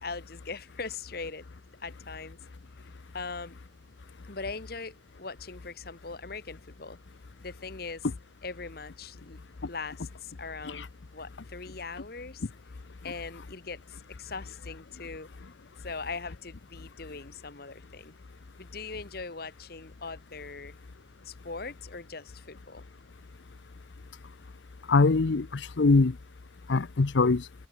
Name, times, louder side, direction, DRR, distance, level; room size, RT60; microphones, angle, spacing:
voice 1, 0.0-1.4 1.8-2.4 3.1-3.6 4.2-7.0 7.4-8.1 8.4-9.4 9.7-10.9 11.1-12.4 13.0-15.3 15.8-18.1 18.6-20.8 21.2-22.8, left 4 dB, 55° left, 1.6 m, -40 dB
voice 2, 24.9-26.2 26.7-27.5, left 3 dB, 80° left, 0.7 m, -23 dB
head